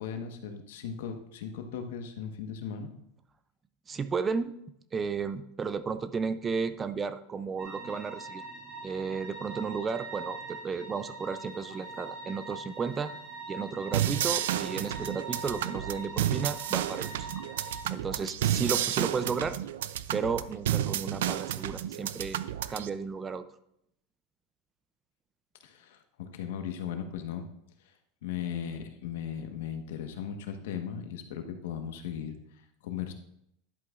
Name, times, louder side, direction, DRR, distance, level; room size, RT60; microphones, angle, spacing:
voice 1, 0.0-2.9 25.6-27.5 27.8-28.0 28.2-33.1, left 8 dB, 80° left, 5 dB, 1.2 m, -37 dB
voice 2, 3.9-4.5 4.9-8.4 8.8-13.1 13.5-17.4 17.9-19.6 20.1-22.4 22.7-23.5, right 5 dB, 20° right, 12 dB, 0.4 m, -33 dB
sound 1, 7.6-17.8, right 3 dB, 40° right, 2.3 m, -43 dB
sound 2, 13.9-22.9, right 11 dB, 85° right, 0.4 m, -31 dB
11.0 x 8.0 x 2.4 m, 0.76 s
supercardioid pair, 145°, 0 cm